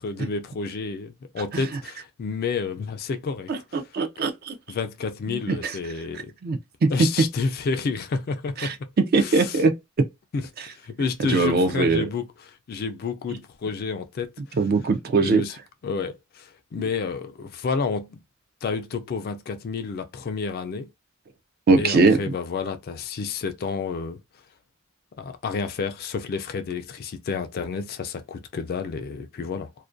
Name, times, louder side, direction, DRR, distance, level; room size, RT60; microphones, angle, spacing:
voice 1, 0.0-3.8 4.7-6.3 6.9-8.9 9.2-9.6 10.3-14.6 15.2-18.2 18.6-20.9 21.8-24.2 25.2-29.7, left 5 dB, 45° left, 0.3 m, -30 dB
voice 2, 3.5-4.6 5.5-5.8 6.4-6.9 8.6-8.7 9.1-9.8 11.3-12.1 14.6-15.4 21.7-22.2, right 3 dB, 45° right, 0.4 m, -21 dB
2.4 x 2.1 x 2.5 m
head